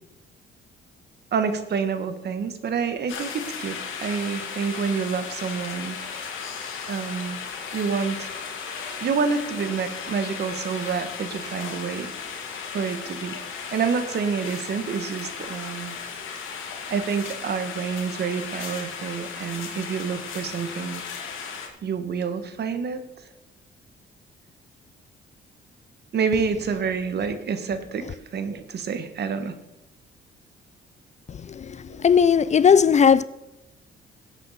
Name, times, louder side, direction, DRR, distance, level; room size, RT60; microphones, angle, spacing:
voice 1, 1.3-6.0 6.9-7.4 7.7-8.3 9.0-12.1 12.7-16.0 16.9-21.0 21.8-23.0 26.1-29.5 31.9-32.0, right 6 dB, 55° right, 1.4 m, -28 dB
sound 1, 3.1-21.7, left 6 dB, 85° left, 2.0 m, -35 dB
voice 2, 31.3-33.2, left 7 dB, 35° left, 0.4 m, -18 dB
16.5 x 8.1 x 4.2 m
cardioid pair, 90°, 20 cm